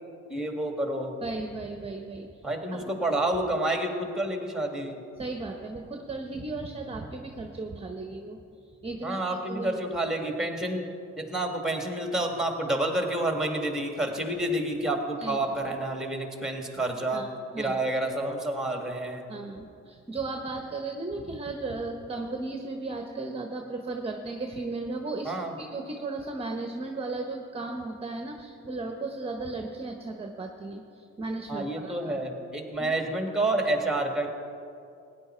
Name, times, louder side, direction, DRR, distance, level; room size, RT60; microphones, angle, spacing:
voice 1, 0.3-1.2 2.4-5.0 9.0-10.9 11.2-17.3 17.6-19.2 25.2-25.5 31.5-34.3, right 1 dB, ahead, 3 dB, 1.9 m, -29 dB
voice 2, 1.2-2.4 2.7-2.8 5.2-8.4 8.8-9.8 15.2-15.4 17.1-17.3 17.5-17.8 19.3-25.3 25.6-32.2 32.8-33.1, right 3 dB, 20° right, 3 dB, 1.0 m, -35 dB
16.5 x 9.9 x 4.4 m, 2.5 s
cardioid pair, 90°, 30 cm